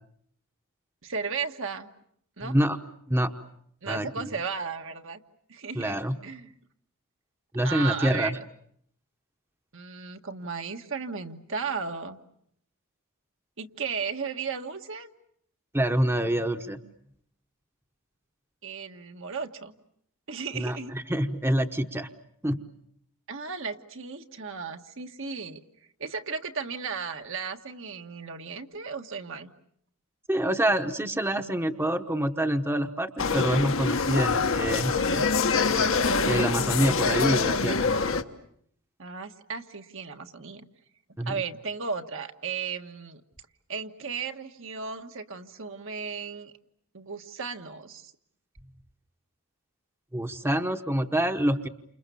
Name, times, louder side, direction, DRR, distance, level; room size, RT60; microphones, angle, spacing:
voice 1, 1.0-1.9 2.4-2.6 3.8-5.2 5.5-6.0 6.2-6.5 7.6-8.4 9.7-12.2 13.6-15.1 18.6-19.7 20.3-20.9 23.3-25.6 26.0-29.5 39.0-40.7 41.2-43.2 43.7-46.5 46.9-48.1, right 5 dB, 60° right, 5 dB, 1.6 m, -35 dB
voice 2, 2.4-2.8 3.1-3.3 3.9-4.1 5.7-6.1 7.5-8.4 15.7-16.8 20.5-22.1 22.4-22.6 30.3-35.3 36.2-37.9 41.2-41.3 50.1-51.7, right 1 dB, 10° right, 7 dB, 1.1 m, -26 dB
sound 1, 33.2-38.2, left 4 dB, 60° left, 1.3 m, -25 dB
29.5 x 28.0 x 7.0 m, 0.68 s
head